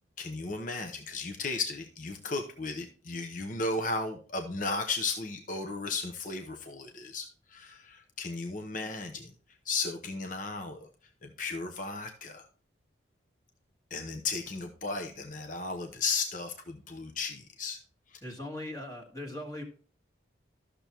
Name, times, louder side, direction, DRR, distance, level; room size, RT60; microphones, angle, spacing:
voice 1, 0.2-9.3 9.6-10.9 11.2-12.5 13.9-17.8 18.1-18.2, left 3 dB, 45° left, 4 dB, 0.9 m, -35 dB
voice 2, 18.2-19.6, left 1 dB, 20° left, 0 dB, 1.7 m, -39 dB
13.5 x 6.8 x 3.0 m, 0.41 s
head